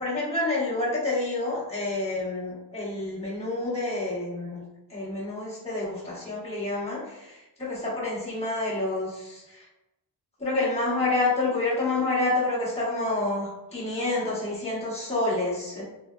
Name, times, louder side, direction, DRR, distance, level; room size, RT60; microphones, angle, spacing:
voice 1, 0.0-4.6 4.9-9.7 10.4-15.8, left 2 dB, 15° left, -8 dB, 1.1 m, -28 dB
3.9 x 2.2 x 2.3 m, 0.95 s
wide cardioid pair, 145°, 41 cm